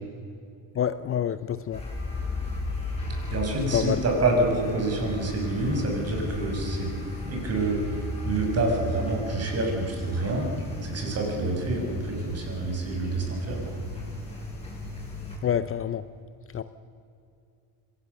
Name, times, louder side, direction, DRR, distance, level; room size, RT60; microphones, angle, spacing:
voice 1, 0.8-1.8 3.7-4.0 15.4-16.0 16.5-16.6, left 9 dB, 35° left, 13 dB, 0.7 m, -27 dB
sound 1, 1.7-15.4, left 2 dB, 15° left, 6.7 m, -35 dB
voice 2, 3.3-6.9 7.2-8.0 8.3-10.5 10.8-13.6, right 2 dB, 40° right, 1 dB, 6.2 m, -27 dB
25.0 x 18.0 x 6.8 m, 2.5 s
cardioid pair, 130°, 39 cm